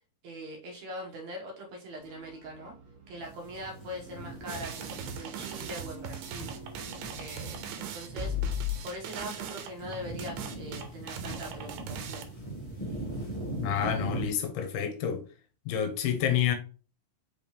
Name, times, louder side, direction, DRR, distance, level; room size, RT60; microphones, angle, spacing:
voice 1, 0.2-2.7 3.1-6.5 7.1-8.4 8.8-12.3, equal, 70° right, 2.0 m, -42 dB
sound 1, 2.0-7.1, right 3 dB, 50° right, 1.2 m, -50 dB
sound 2, 3.2-14.3, right 1 dB, 25° left, 0.8 m, -41 dB
sound 3, 4.5-12.2, equal, 85° right, 2.3 m, -37 dB
voice 2, 13.6-15.2 15.7-16.5, left 9 dB, 85° left, 2.4 m, -28 dB
5.3 x 3.4 x 2.8 m
omnidirectional pair, 3.7 m